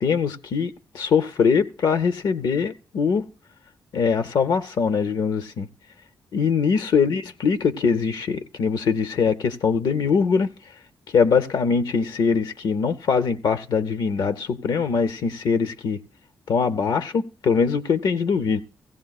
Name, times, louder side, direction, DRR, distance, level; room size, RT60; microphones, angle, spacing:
voice 1, 0.0-3.3 3.9-5.7 6.3-10.5 11.1-16.0 16.5-18.6, left 5 dB, 75° left, 0.6 m, -22 dB
16.5 x 15.5 x 2.3 m
cardioid pair, 100°, 7 cm